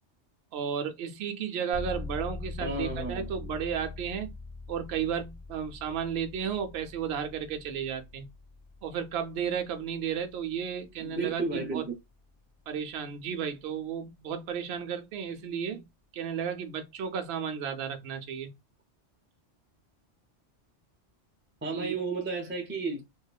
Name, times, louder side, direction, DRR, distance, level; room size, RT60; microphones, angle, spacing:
voice 1, 0.5-4.3 4.7-8.3 8.8-11.9 12.7-15.9 16.1-18.5 21.7-21.9, right 7 dB, 65° right, 0.8 m, -33 dB
sound 1, 1.7-12.3, left 3 dB, 70° left, 1.0 m, -43 dB
voice 2, 2.6-3.3 11.0-11.8 21.6-23.0, right 3 dB, 15° right, 0.4 m, -32 dB
2.8 x 2.3 x 2.2 m
omnidirectional pair, 1.2 m